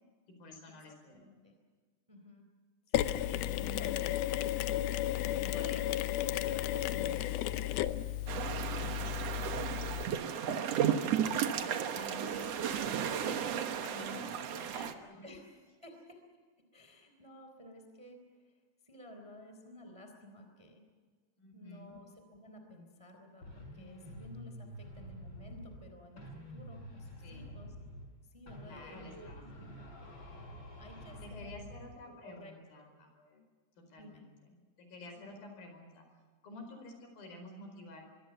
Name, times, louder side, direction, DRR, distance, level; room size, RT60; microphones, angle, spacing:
voice 1, 0.4-1.3 2.9-4.5 5.0-7.8 8.4-10.1 11.6-15.3 21.4-21.9 27.2-27.6 28.6-30.0 31.2-33.4 33.9-34.3 34.8-36.0 36.4-38.0, left 2 dB, 60° left, 4 dB, 6.3 m, -50 dB
voice 2, 1.1-1.6 2.1-2.5 3.8-3.9 11.4-12.0 13.6-14.3 14.8-14.9 15.2-16.2 16.7-18.6 18.9-20.8 21.5-27.7 28.3-29.1 30.8-31.6 32.1-32.8 34.0-34.3 35.2-35.4, left 1 dB, 10° right, 5 dB, 2.7 m, -54 dB
Mechanisms, 2.9-10.1, left 13 dB, 75° left, 2.4 m, -33 dB
sound 1, 8.3-14.9, right 8 dB, 80° right, 1.4 m, -34 dB
sound 2, 23.4-25.9 26.2-28.2 28.5-31.9, equal, 25° left, 7.0 m, -48 dB
25.0 x 23.5 x 7.0 m, 1.6 s
omnidirectional pair, 4.9 m